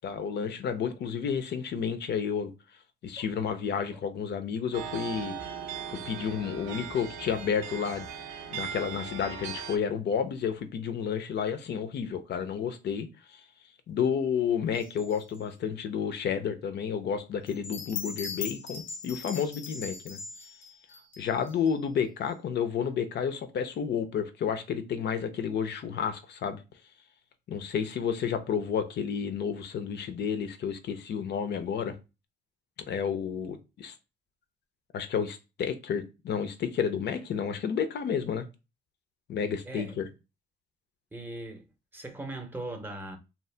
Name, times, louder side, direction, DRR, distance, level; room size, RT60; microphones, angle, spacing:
voice 1, 0.0-2.5 3.0-5.4 5.9-8.1 8.5-13.4 13.9-20.2 21.2-26.6 27.5-31.9 32.9-33.9 34.9-38.5 39.3-40.0, left 7 dB, 60° left, 0.5 m, -31 dB
sound 1, 4.7-9.8, right 7 dB, 90° right, 0.6 m, -39 dB
sound 2, 14.7-15.4 17.5-22.0, left 6 dB, 90° left, 0.9 m, -40 dB
voice 2, 39.6-40.1 41.1-41.7 41.9-43.2, right 2 dB, 10° right, 0.7 m, -39 dB
2.7 x 2.0 x 3.2 m
cardioid pair, 90°, 20 cm